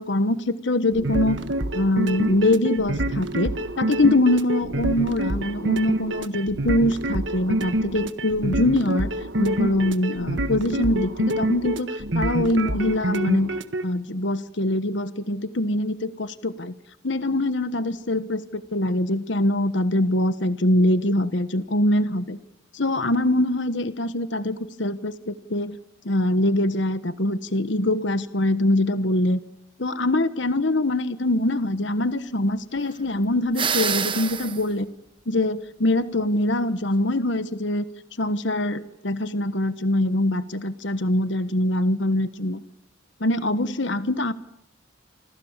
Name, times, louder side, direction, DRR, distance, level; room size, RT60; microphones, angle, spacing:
voice 1, 0.0-1.4 1.7-9.1 9.4-13.5 13.8-16.7 17.0-22.4 22.7-25.8 26.0-29.4 29.8-34.9 35.3-37.8 38.2-42.6 43.2-44.3, left 1 dB, 60° left, 12 dB, 1.2 m, -23 dB
sound 1, 0.9-13.8, right 1 dB, 65° right, 1.6 m, -27 dB
sound 2, 33.5-34.6, right 6 dB, 25° right, 1.3 m, -26 dB
28.0 x 25.5 x 7.4 m, 0.84 s
head